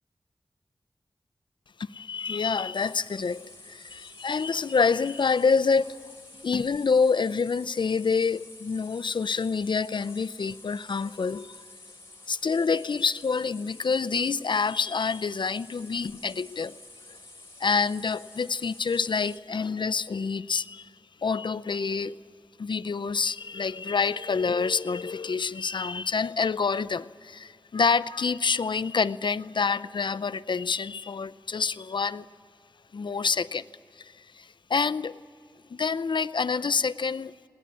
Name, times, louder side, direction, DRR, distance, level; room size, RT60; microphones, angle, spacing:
voice 1, 1.9-6.0 6.4-11.6 12.3-16.8 17.6-20.9 21.2-22.2 22.6-32.2 32.9-33.6 34.0-35.2 35.7-37.3, left 5 dB, 70° left, 0.6 m, -27 dB
sound 1, 2.7-19.4, left 2 dB, 35° left, 3.1 m, -50 dB
21.5 x 18.0 x 9.8 m
wide cardioid pair, 70°, 8 cm